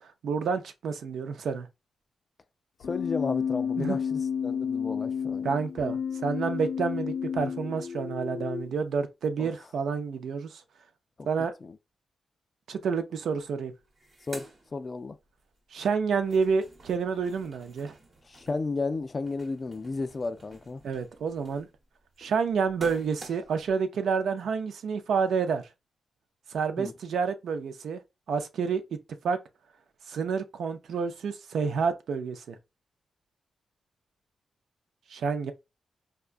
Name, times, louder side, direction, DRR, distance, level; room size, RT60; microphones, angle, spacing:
voice 1, 0.0-1.7 3.8-4.0 5.4-10.6 11.3-11.5 12.7-13.7 15.7-17.9 20.8-21.7 22.2-25.6 26.5-28.0 28.3-28.8 29.2-29.4 30.1-32.6 35.1-35.5, right 5 dB, 80° right, 0.5 m, -29 dB
Keyboard (musical), 2.8-8.8, left 7 dB, 90° left, 0.5 m, -31 dB
voice 2, 2.9-5.6 9.4-9.5 11.2-11.3 11.6-11.7 14.3-15.2 18.3-20.8 26.8-26.9, left 3 dB, 35° left, 0.3 m, -33 dB
sound 1, 13.3-13.4 13.7-15.4 15.8-23.7, right 2 dB, 45° right, 1.0 m, -50 dB
4.7 x 2.2 x 2.5 m
wide cardioid pair, 120°, 0 cm